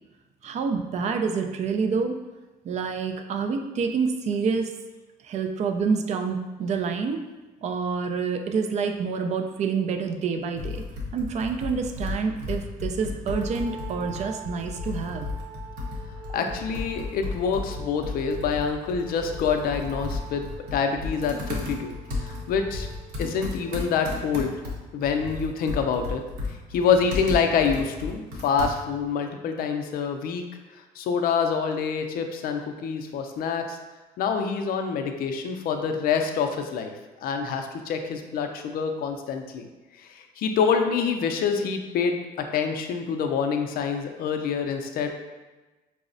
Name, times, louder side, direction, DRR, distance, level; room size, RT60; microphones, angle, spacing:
voice 1, 0.4-2.2 2.6-4.7 5.2-7.2 7.6-10.8 11.1-15.3, right 5 dB, 45° right, 5 dB, 0.4 m, -27 dB
Computer keyboard, 10.5-29.1, left 3 dB, 75° right, 0.8 m, -34 dB
sound 1, 13.3-23.8, right 6 dB, 10° right, 0.7 m, -44 dB
voice 2, 16.3-22.9 23.2-24.5 24.9-26.2 26.5-30.4 30.7-33.8 34.2-36.9 37.2-39.7 40.0-45.1, left 6 dB, 60° left, 5 dB, 0.4 m, -26 dB
4.7 x 2.0 x 2.5 m, 1.2 s
cardioid pair, 110°, 17 cm